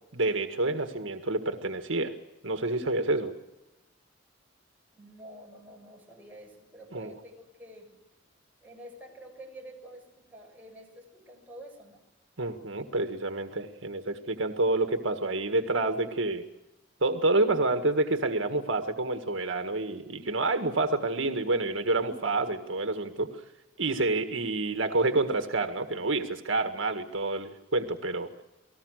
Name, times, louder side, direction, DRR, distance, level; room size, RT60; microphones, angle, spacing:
voice 1, 0.1-2.1 2.4-3.3 6.9-7.1 12.4-16.4 17.0-23.4 23.8-28.3, right 2 dB, 75° right, 7 dB, 1.8 m, -28 dB
voice 2, 4.9-7.9 8.6-12.0 12.4-12.5, right 1 dB, 10° right, -2 dB, 7.7 m, -48 dB
29.5 x 19.0 x 6.5 m, 0.97 s
head